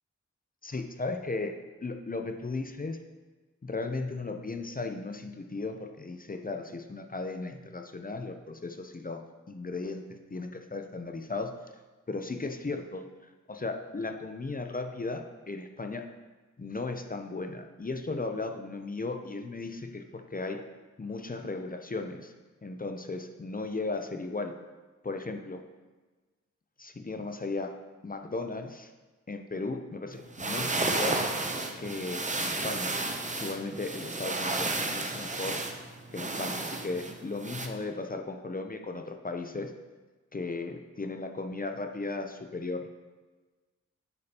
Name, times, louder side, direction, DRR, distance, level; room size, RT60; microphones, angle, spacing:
voice 1, 0.6-1.5 1.8-3.0 3.6-9.2 9.5-10.0 10.3-11.5 12.1-13.0 13.5-16.0 16.6-20.6 21.0-22.3 22.6-24.5 25.0-25.6 26.8-27.7 28.0-28.9 29.3-31.2 31.8-32.9 33.4-35.6 36.1-39.7 40.3-42.9, left 3 dB, 30° left, 5 dB, 0.6 m, -36 dB
sound 1, 30.2-37.7, right 2 dB, 25° right, 0.6 m, -32 dB
8.1 x 5.1 x 2.9 m, 1.3 s
cardioid pair, 60°, 30 cm